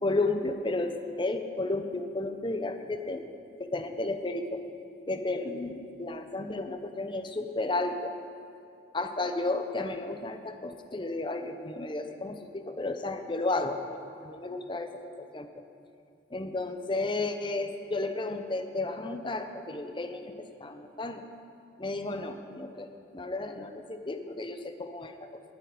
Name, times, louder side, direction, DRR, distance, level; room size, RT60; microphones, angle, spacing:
voice 1, 0.0-3.3 3.6-4.6 5.1-8.2 8.9-15.5 16.3-21.2 21.8-25.4, left 2 dB, 25° left, 7 dB, 0.7 m, -33 dB
10.5 x 9.4 x 10.0 m, 2.5 s
head